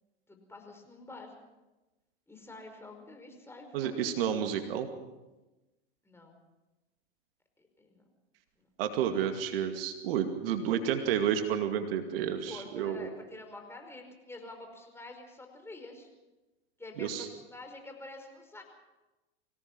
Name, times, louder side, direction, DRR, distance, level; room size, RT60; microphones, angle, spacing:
voice 1, 0.3-1.3 2.3-4.0 6.0-6.4 7.6-8.0 8.6-8.7 12.5-16.1 16.8-18.6, left 2 dB, 10° left, 3 dB, 5.1 m, -48 dB
voice 2, 3.7-4.9 8.8-13.1 17.0-17.3, right 9 dB, 70° right, 6 dB, 2.4 m, -30 dB
24.5 x 18.0 x 6.1 m, 1.1 s
hypercardioid pair, 100°, 31 cm